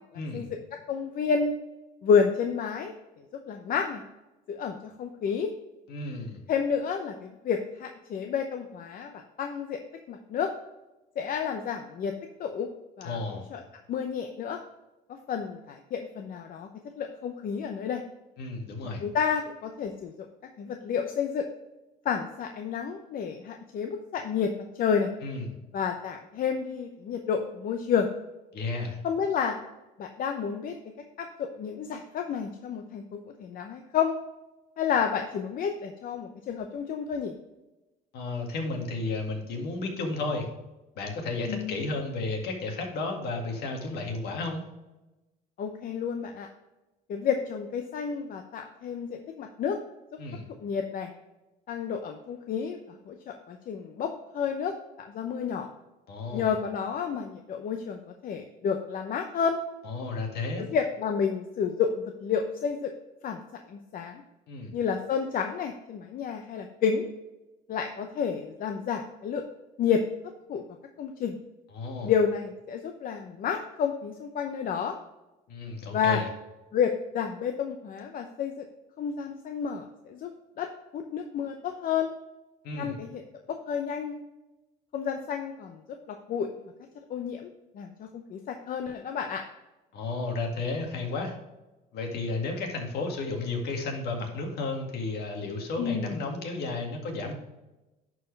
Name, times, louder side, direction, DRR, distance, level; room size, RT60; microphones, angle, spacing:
voice 1, 0.1-0.5 5.9-6.4 13.0-13.5 18.4-19.0 25.2-25.5 28.5-29.0 38.1-40.5 41.0-44.7 50.2-50.4 56.1-56.5 59.8-60.7 64.5-64.7 71.7-72.1 75.5-76.3 82.6-83.0 89.9-91.4 91.9-97.3, left 3 dB, 75° left, 2 dB, 2.0 m, -33 dB
voice 2, 0.9-1.5 2.0-2.9 3.5-4.0 4.5-5.5 6.5-9.8 10.1-10.5 11.2-12.1 12.4-12.7 13.0-13.6 13.9-14.6 15.3-16.7 17.0-18.0 19.0-20.1 20.6-21.4 22.0-25.1 25.7-28.1 29.0-29.6 30.0-30.8 31.2-31.3 31.6-34.1 34.8-37.3 41.5-41.8 45.6-46.5 47.1-49.8 50.6-51.1 51.7-54.7 55.0-55.7 56.3-59.6 60.6-62.9 63.2-63.4 63.7-64.2 64.7-67.0 67.7-69.4 69.8-70.0 70.5-70.6 71.0-71.4 72.0-74.9 75.9-76.2 76.7-78.6 79.0-80.3 80.6-80.7 80.9-82.1 82.7-83.2 83.5-84.2 84.9-85.8 86.1-86.5 87.1-87.5 87.7-89.4 95.8-96.2, left 7 dB, 55° left, 5 dB, 0.7 m, -30 dB
11.0 x 4.7 x 3.3 m, 1.0 s
cardioid pair, 110°, 17 cm